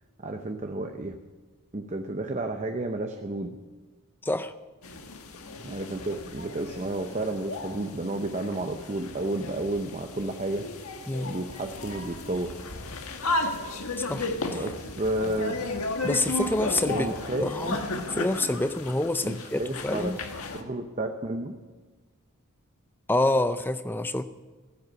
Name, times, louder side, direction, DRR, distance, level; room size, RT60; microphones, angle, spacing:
voice 1, 0.2-1.1 1.7-3.6 5.6-10.7 11.2-12.5 14.5-15.9 16.9-17.5 19.2-20.1 20.5-21.6, right 2 dB, 30° right, 5 dB, 0.7 m, -31 dB
voice 2, 4.2-4.5 11.1-11.3 14.0-14.6 16.0-17.1 17.4-17.8 18.1-20.2 23.1-24.2, left 2 dB, 10° left, 11 dB, 0.5 m, -27 dB
sound 1, 4.8-20.6, left 2 dB, 80° left, 1.5 m, -34 dB
15.5 x 8.0 x 9.6 m, 1.3 s
head